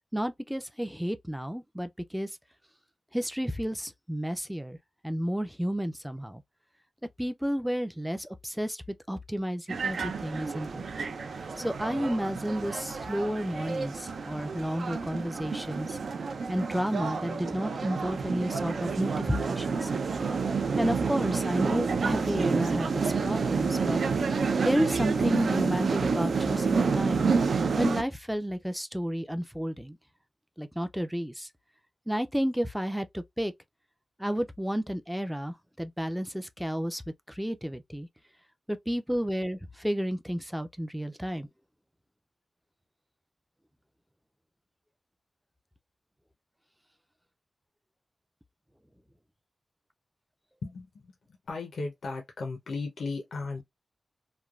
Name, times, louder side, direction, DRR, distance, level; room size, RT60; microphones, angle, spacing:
voice 1, 0.1-2.3 3.1-4.8 5.0-6.4 7.2-8.8 9.1-10.8 11.6-16.0 16.5-19.9 20.8-24.0 24.6-27.3 27.8-30.0 30.6-31.5 32.1-33.5 34.2-37.0 37.3-38.1 38.7-41.5, equal, 5° right, 0.3 m, -31 dB
sound 1, 9.7-28.0, right 5 dB, 75° right, 0.4 m, -29 dB
voice 2, 50.6-51.1 51.5-53.6, left 3 dB, 85° left, 0.6 m, -35 dB
3.1 x 2.2 x 2.3 m
wide cardioid pair, 110°, 0 cm